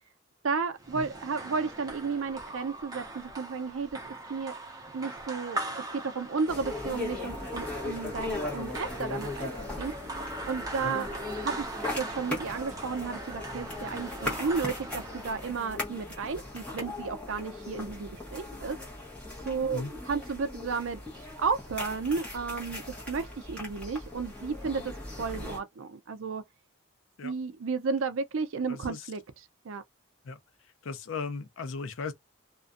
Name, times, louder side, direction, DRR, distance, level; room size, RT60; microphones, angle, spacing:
voice 1, 0.4-3.9 4.3-4.5 4.9-9.5 9.8-10.0 10.5-11.1 11.4-11.7 12.0-18.8 19.5-21.0 21.4-24.9 25.2-26.4 27.2-29.2 29.6-29.8, right 5 dB, 75° right, 0.5 m, -33 dB
sound 1, 0.8-15.6, right 2 dB, 15° right, 0.7 m, -40 dB
sound 2, 6.5-25.6, left 2 dB, 5° left, 0.9 m, -38 dB
voice 2, 28.7-29.1 30.2-30.4 30.8-32.1, left 4 dB, 70° left, 0.5 m, -37 dB
2.5 x 2.2 x 2.4 m
head